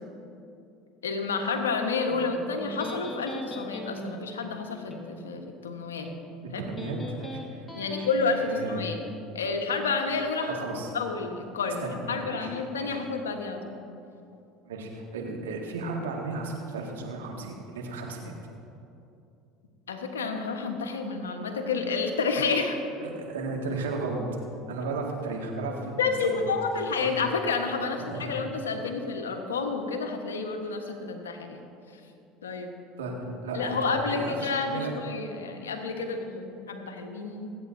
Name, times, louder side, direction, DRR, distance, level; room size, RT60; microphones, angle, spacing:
voice 1, 1.0-6.1 7.7-9.0 9.3-10.5 10.9-13.8 19.9-22.8 26.0-31.7 32.4-32.8 33.5-37.5, left 4 dB, 90° left, 4 dB, 1.1 m, -30 dB
Electric guitar, 2.1-9.1, left 1 dB, 15° left, 1.9 m, -41 dB
voice 2, 6.4-7.6 8.0-8.1 8.4-8.9 10.5-10.9 11.8-13.0 14.6-18.3 23.0-24.2 24.7-26.4 27.0-27.2 27.9-28.3 33.0-33.2 33.4-34.9, right 3 dB, 85° right, -1 dB, 1.9 m, -34 dB
26.0 x 8.7 x 2.6 m, 2.7 s
hypercardioid pair, 75°, 0 cm